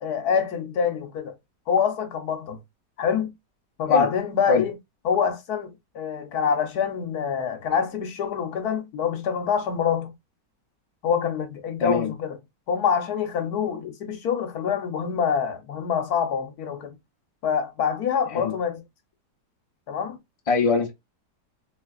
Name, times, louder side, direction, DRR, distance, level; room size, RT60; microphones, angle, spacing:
voice 1, 0.0-1.3 1.7-2.6 3.0-3.3 3.8-4.7 5.0-10.1 11.0-12.4 12.7-16.9 17.4-18.8 19.9-20.2, left 7 dB, 65° left, 1.3 m, -25 dB
voice 2, 11.8-12.1 18.3-18.5 20.5-20.9, left 4 dB, 45° left, 0.4 m, -23 dB
3.3 x 3.1 x 2.3 m
omnidirectional pair, 1.9 m